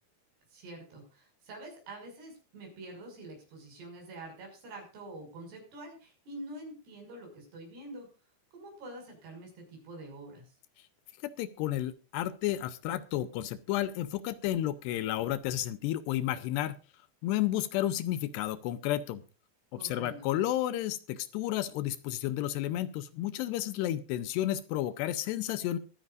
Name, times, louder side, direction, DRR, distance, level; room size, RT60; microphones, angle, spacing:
voice 1, 0.5-8.1 8.5-10.5 19.8-20.3, right 2 dB, 65° right, 2 dB, 8.0 m, -46 dB
voice 2, 11.2-16.8 17.2-19.2 19.7-25.8, left 13 dB, 80° left, 14 dB, 2.7 m, -32 dB
23.5 x 10.0 x 2.5 m, 0.31 s
omnidirectional pair, 5.1 m